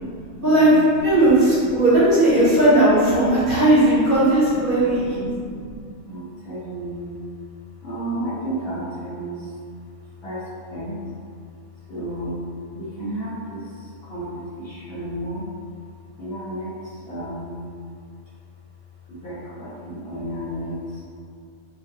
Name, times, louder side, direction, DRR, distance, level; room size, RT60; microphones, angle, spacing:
voice 1, 0.0-1.4 1.7-1.8 3.2-3.6 4.2-7.2 7.8-9.5 10.2-11.0 11.9-12.4 12.7-15.4 16.2-17.7 19.1-21.0, right 1 dB, 60° left, -9 dB, 0.7 m, -33 dB
voice 2, 1.0-5.2, right 1 dB, 50° right, -11 dB, 0.9 m, -17 dB
2.3 x 2.0 x 2.6 m, 2.2 s
omnidirectional pair, 1.3 m